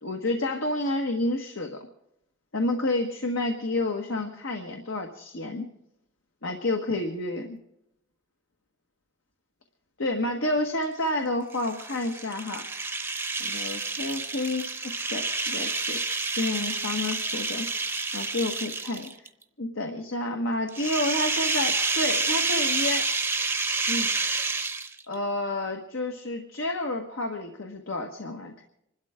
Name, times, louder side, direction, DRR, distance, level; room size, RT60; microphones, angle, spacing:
voice 1, 0.0-1.8 2.5-5.7 6.4-7.6 10.0-12.7 13.4-14.7 15.0-17.7 18.1-19.1 19.6-23.1 23.9-24.1 25.1-28.6, left 2 dB, 75° left, 3 dB, 1.6 m, -30 dB
sound 1, 11.5-19.3 20.7-25.1, right 3 dB, 10° right, 0.8 m, -29 dB
27.5 x 12.5 x 3.7 m, 0.83 s
head